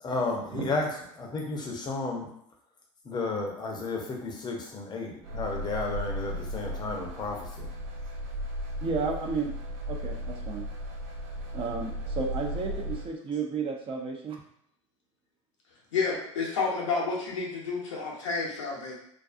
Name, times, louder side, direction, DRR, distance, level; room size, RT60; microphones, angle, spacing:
voice 1, 0.0-2.3 3.0-7.7, left 3 dB, 25° left, 1 dB, 0.7 m, -32 dB
sound 1, 5.2-13.1, equal, 65° right, 0.9 m, -36 dB
voice 2, 8.8-9.5 9.9-10.6 11.5-14.4, right 4 dB, 35° right, 0 dB, 0.5 m, -32 dB
voice 3, 15.9-18.9, left 4 dB, 75° left, -3 dB, 0.8 m, -30 dB
2.5 x 2.3 x 2.4 m, 0.72 s
figure-of-eight pair, 75°, 16 cm